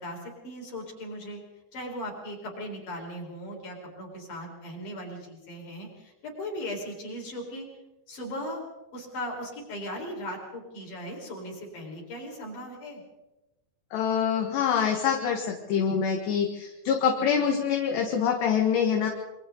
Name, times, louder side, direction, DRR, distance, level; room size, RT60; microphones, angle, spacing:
voice 1, 0.0-1.4 1.7-7.7 8.1-8.6 8.9-13.0 17.2-17.5, equal, 45° left, 0 dB, 6.2 m, -38 dB
voice 2, 13.9-19.1, left 7 dB, 70° left, 2 dB, 3.7 m, -25 dB
27.5 x 23.5 x 4.0 m, 1.0 s
omnidirectional pair, 5.3 m